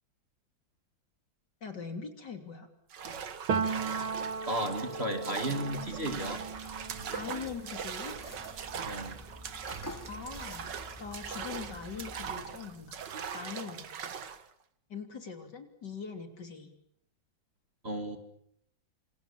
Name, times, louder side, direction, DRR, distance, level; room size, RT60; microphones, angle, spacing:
voice 1, 1.6-2.7 7.1-8.2 10.1-13.0 13.3-13.9 14.9-16.7, left 5 dB, 60° left, 6 dB, 3.6 m, -42 dB
sound 1, 2.9-14.5, right 7 dB, 65° right, 2.1 m, -41 dB
Piano, 3.5-11.1 11.5-13.0, right 5 dB, 85° right, 2.7 m, -38 dB
voice 2, 4.5-6.4 8.8-9.2 17.8-18.2, right 1 dB, 30° right, 7 dB, 2.7 m, -34 dB
sound 2, 5.7-12.4, left 1 dB, 10° left, 2.6 m, -49 dB
27.5 x 27.5 x 7.3 m, 0.71 s
omnidirectional pair, 2.2 m